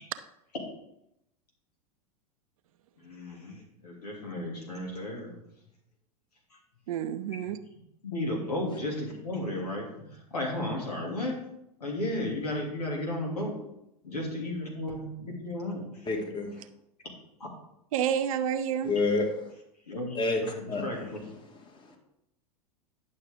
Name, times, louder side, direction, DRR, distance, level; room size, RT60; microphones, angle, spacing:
voice 1, 3.0-5.3 7.4-7.5 8.0-11.4 11.8-13.6 14.0-16.1 17.4-17.5 19.9-21.3, left 1 dB, 80° left, -1 dB, 2.8 m, -34 dB
voice 2, 6.9-7.6 17.9-18.9, right 9 dB, 60° right, 11 dB, 0.7 m, -29 dB
voice 3, 16.1-16.6 18.8-19.3 20.2-20.4 20.7-20.9 21.9-22.0, left 3 dB, 25° left, 2 dB, 2.0 m, -28 dB
10.5 x 6.4 x 3.7 m, 0.82 s
figure-of-eight pair, 90°, 20 cm